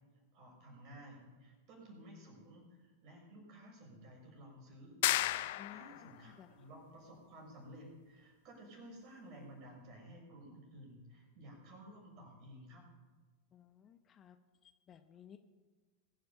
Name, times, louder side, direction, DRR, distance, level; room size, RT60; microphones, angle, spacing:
voice 1, 0.3-5.0 5.3-12.8, equal, 40° right, 0 dB, 6.5 m, -54 dB
sound 1, 5.0-6.1, left 16 dB, 50° left, 0.6 m, -33 dB
voice 2, 13.5-14.4 14.9-15.4, left 9 dB, 25° left, 9 dB, 1.0 m, -56 dB
22.0 x 8.1 x 7.1 m, 1.3 s
figure-of-eight pair, 90°, 0 cm